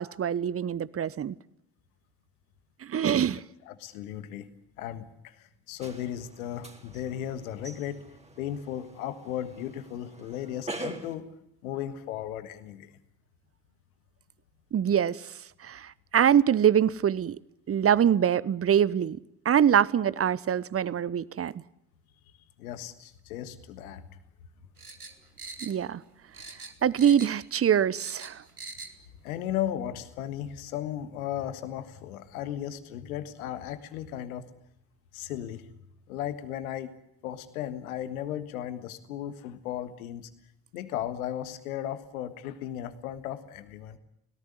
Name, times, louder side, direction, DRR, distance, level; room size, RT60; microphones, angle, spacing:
voice 1, 0.0-1.4 2.8-3.4 14.7-15.2 15.6-17.4 17.7-19.2 19.4-21.6 25.6-26.0 26.8-28.4, right 9 dB, 30° right, 0.9 m, -24 dB
voice 2, 3.7-4.5 4.8-8.0 8.4-11.3 11.6-12.9 22.6-24.0 29.2-34.5 35.1-35.7 36.1-36.9 37.2-40.3 40.7-44.0, left 11 dB, 75° left, 1.6 m, -36 dB
sound 1, 5.8-11.2, right 2 dB, 15° right, 3.4 m, -44 dB
sound 2, 24.8-26.1 26.3-27.5 27.8-29.0 29.3-29.4, right 3 dB, 90° right, 1.2 m, -43 dB
24.0 x 18.0 x 9.7 m
figure-of-eight pair, 40°, 43 cm